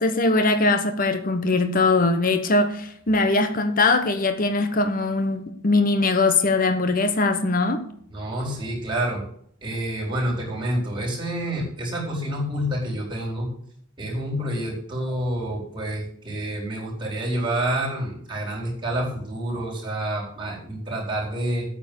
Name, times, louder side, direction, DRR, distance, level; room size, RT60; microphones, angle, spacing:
voice 1, 0.0-7.8, left 3 dB, 40° left, 1.1 m, -21 dB
voice 2, 8.1-9.2 9.6-13.5 14.0-21.6, right 1 dB, 20° right, 4.4 m, -28 dB
9.2 x 8.8 x 6.9 m
head